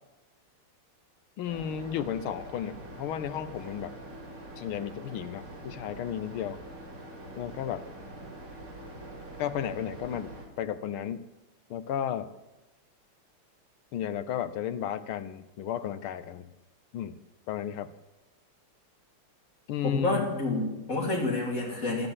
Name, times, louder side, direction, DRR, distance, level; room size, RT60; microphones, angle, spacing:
voice 1, 1.4-3.9 4.6-6.6 7.4-7.9 9.4-11.3 11.7-12.3 13.9-16.5 16.9-17.2 17.5-17.9 19.7-20.3, left 9 dB, 75° left, 13 dB, 1.6 m, -33 dB
sound 1, 1.5-10.5, right 1 dB, 40° right, 3.2 m, -44 dB
voice 2, 19.8-22.1, left 2 dB, 35° left, -2 dB, 3.8 m, -29 dB
12.5 x 9.9 x 7.4 m, 1.1 s
omnidirectional pair, 2.4 m